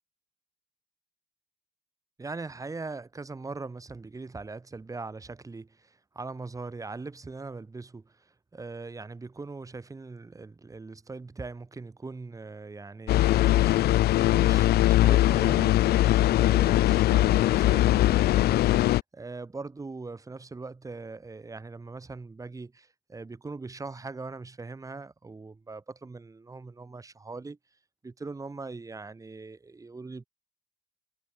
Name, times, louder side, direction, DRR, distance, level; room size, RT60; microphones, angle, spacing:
voice 1, 2.2-27.6 28.0-30.3, right 3 dB, 20° right, 3.9 m, -41 dB
sound 1, 13.1-19.0, left 15 dB, 70° left, 0.9 m, -21 dB
cardioid pair, 110°, 17 cm